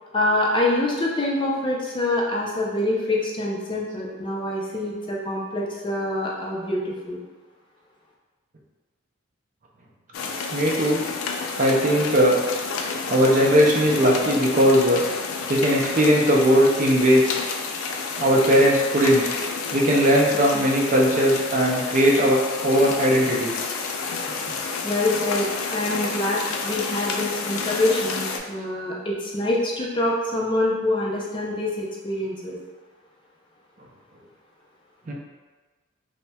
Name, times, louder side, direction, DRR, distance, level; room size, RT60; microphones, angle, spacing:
voice 1, 0.1-7.2 24.8-32.6, left 1 dB, 25° left, -4 dB, 0.5 m, -25 dB
sound 1, 10.1-28.4, left 4 dB, 90° left, 0.3 m, -30 dB
voice 2, 10.5-11.0 11.6-12.4 13.1-15.0 15.5-17.4 18.2-19.2 19.7-23.5 35.1-35.2, equal, 40° right, -2 dB, 0.4 m, -19 dB
4.1 x 2.1 x 2.2 m, 1.3 s
head